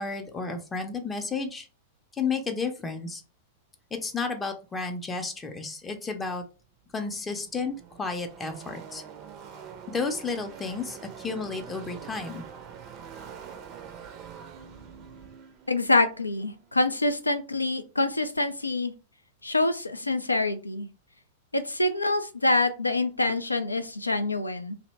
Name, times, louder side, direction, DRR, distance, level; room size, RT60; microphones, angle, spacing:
voice 1, 0.0-1.7 2.2-3.2 3.9-6.4 6.9-9.0 9.9-12.4, left 4 dB, 15° left, 5 dB, 0.5 m, -32 dB
Car passing by / Race car auto racing, 6.5-6.6 6.8-17.4, right 7 dB, 35° right, 0.4 m, -45 dB
voice 2, 15.7-18.9 19.4-20.9 21.5-24.7, left 2 dB, 85° left, 9 dB, 0.3 m, -26 dB
2.6 x 2.0 x 3.1 m, 0.34 s
figure-of-eight pair, 95°, 0 cm